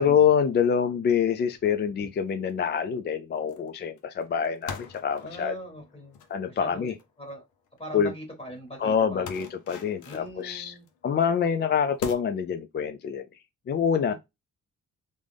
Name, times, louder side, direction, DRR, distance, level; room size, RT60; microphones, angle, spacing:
voice 1, 0.0-5.5 6.3-6.9 7.9-8.1 8.8-10.7 11.0-13.2 13.7-14.1, left 7 dB, 35° left, 0.4 m, -25 dB
sound 1, 1.5-1.8 2.2-2.5 3.5-3.7 4.0-7.8 8.2-8.3 8.6-8.7 9.2-11.0 11.4-11.5 12.0-12.1, left 6 dB, 80° left, 0.8 m, -43 dB
voice 2, 5.2-6.2 6.5-7.4 7.8-9.3 10.0-10.8 14.1-14.2, equal, 20° left, 1.6 m, -41 dB
3.6 x 2.6 x 3.2 m
cardioid pair, 90°, 30 cm